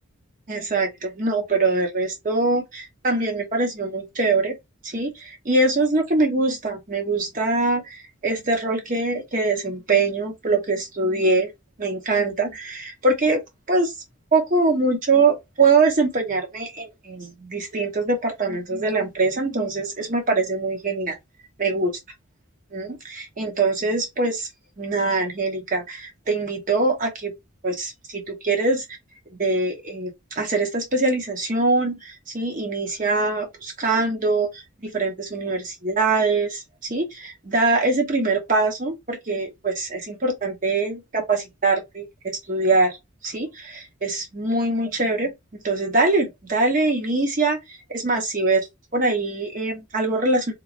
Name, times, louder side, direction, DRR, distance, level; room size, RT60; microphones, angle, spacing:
voice 1, 0.5-4.5 4.8-11.5 11.8-13.4 13.7-13.9 14.3-21.1 21.6-21.9 22.7-24.5 24.8-27.3 27.6-28.8 29.3-43.0 43.2-48.7 48.9-50.5, right 3 dB, 40° right, 0.8 m, -23 dB
3.0 x 2.4 x 2.5 m
head